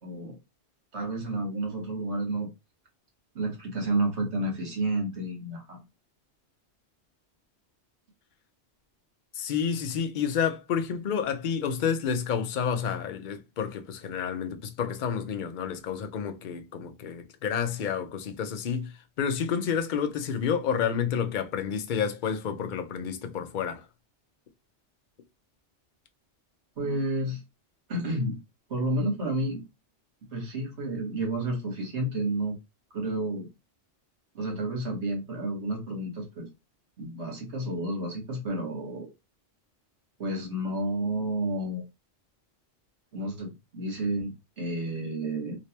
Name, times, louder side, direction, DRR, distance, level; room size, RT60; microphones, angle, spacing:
voice 1, 0.0-0.4 0.9-2.5 3.3-5.8 26.8-27.4 27.9-28.4 28.7-29.6 30.3-32.5 32.9-33.5 34.3-36.5 37.0-39.1 40.2-41.8 43.1-45.6, right 1 dB, 70° right, 1.6 m, -30 dB
voice 2, 9.3-23.9, left 7 dB, 55° left, 0.6 m, -30 dB
3.2 x 2.8 x 2.8 m
omnidirectional pair, 1.2 m